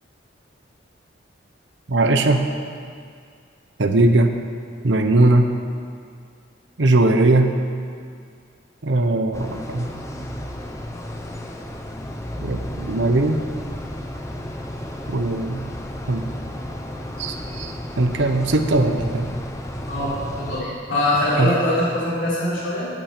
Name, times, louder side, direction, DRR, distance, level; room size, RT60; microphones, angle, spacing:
voice 1, 1.9-2.4 3.8-4.3 4.8-5.5 6.8-7.5 8.8-9.9 12.4-13.4 15.1-15.7 16.1-16.3 17.2-19.3 21.4-21.5, right 2 dB, 65° right, 5 dB, 0.8 m, -19 dB
sound 1, 9.3-20.6, equal, 15° left, 0.7 m, -33 dB
voice 2, 19.9-22.9, left 1 dB, 90° left, -7 dB, 3.5 m, -23 dB
9.0 x 8.6 x 8.1 m, 2.2 s
head